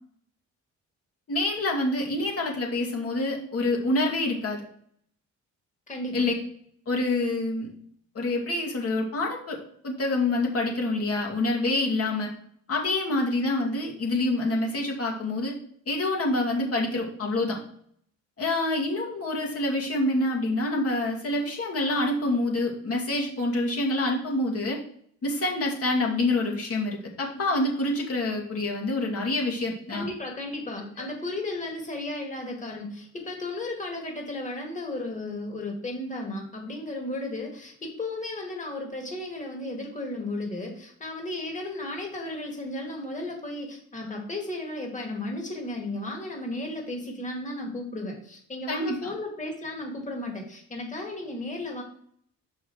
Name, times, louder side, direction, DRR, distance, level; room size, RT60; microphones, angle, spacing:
voice 1, 1.3-4.6 6.1-6.3 6.9-7.7 8.1-9.6 9.8-12.3 12.7-15.6 15.9-17.6 18.4-24.8 25.2-30.0 48.7-49.1, left 2 dB, 50° left, 0 dB, 2.3 m, -27 dB
voice 2, 29.9-51.8, left 2 dB, 25° left, 1 dB, 2.2 m, -34 dB
6.2 x 5.6 x 4.7 m, 0.63 s
cardioid pair, 90°, 30 cm